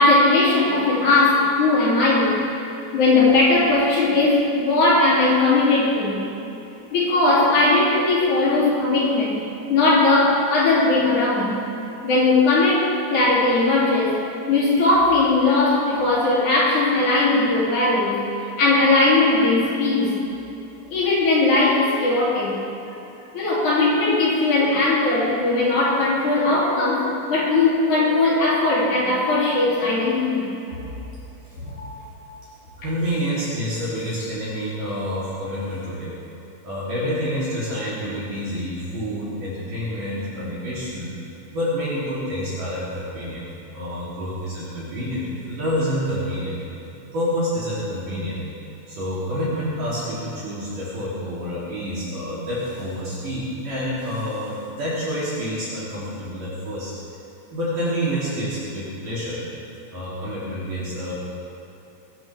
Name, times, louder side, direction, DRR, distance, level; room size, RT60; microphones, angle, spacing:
voice 1, 0.0-2.4 2.9-6.2 6.9-9.4 9.7-11.6 12.0-14.1 14.5-20.1 20.9-22.6 23.3-30.5 30.8-30.9 31.6-31.9 32.2-32.4, left 2 dB, 45° left, -6 dB, 4.0 m, -19 dB
voice 2, 32.8-36.1 36.6-41.1 41.5-43.4 43.7-46.6 47.1-48.4 48.9-56.9 57.5-59.4 59.9-61.1, equal, 50° right, -10 dB, 4.5 m, -28 dB
22.0 x 14.0 x 3.5 m, 2.8 s
omnidirectional pair, 5.2 m